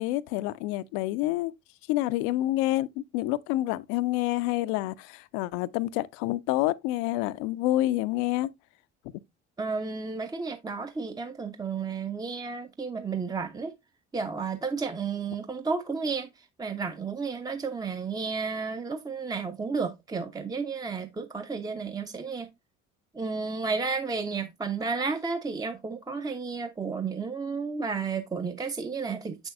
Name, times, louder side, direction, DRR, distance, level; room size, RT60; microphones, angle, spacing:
voice 1, 0.0-1.5 1.9-8.5, left 16 dB, 55° left, 0.5 m, -28 dB
voice 2, 9.6-13.7 14.1-22.5 23.1-29.5, right 4 dB, 10° right, 0.6 m, -32 dB
7.5 x 6.1 x 2.4 m
figure-of-eight pair, 50°, 36 cm